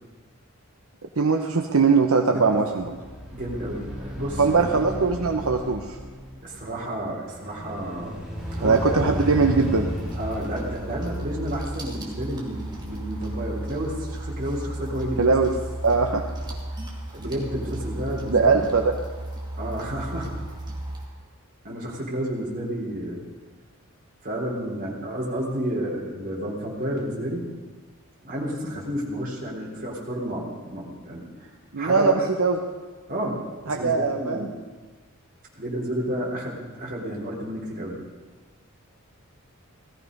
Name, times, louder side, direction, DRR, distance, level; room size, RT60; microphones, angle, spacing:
voice 1, 1.2-2.8 4.4-6.0 8.6-9.9 15.2-15.5 15.8-16.2 18.3-18.9 31.7-32.6 33.7-34.5, right 4 dB, 75° right, 3 dB, 1.0 m, -21 dB
sound 1, 2.7-13.0, equal, 5° right, 2.9 m, -35 dB
voice 2, 3.3-4.8 6.4-8.2 8.6-9.1 10.1-15.3 17.1-18.6 19.6-20.3 21.6-23.2 24.2-27.5 28.2-31.5 31.8-32.1 33.1-33.3 33.7-34.5 35.6-38.0, equal, 40° right, -3 dB, 3.8 m, -31 dB
sound 2, 8.3-21.0, right 1 dB, 20° right, 2.5 m, -34 dB
17.5 x 14.5 x 5.4 m, 1.4 s
head